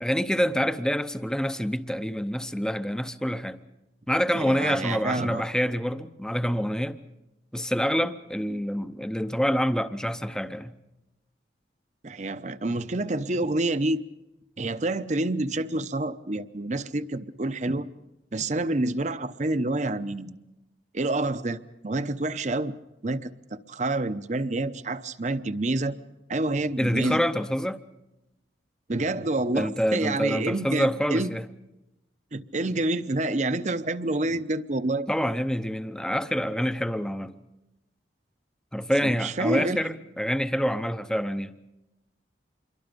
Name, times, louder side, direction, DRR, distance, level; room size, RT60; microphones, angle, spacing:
voice 1, 0.0-3.6 4.1-7.0 7.5-10.7 26.8-27.8 29.5-31.4 35.1-37.3 38.7-41.5, equal, 5° left, 0.7 m, -27 dB
voice 2, 4.3-5.4 12.0-14.0 14.6-17.9 18.3-20.4 20.9-22.7 23.0-26.0 26.3-27.2 28.9-31.3 32.3-35.1 39.0-39.8, right 2 dB, 40° right, 0.8 m, -28 dB
27.0 x 22.5 x 5.2 m
head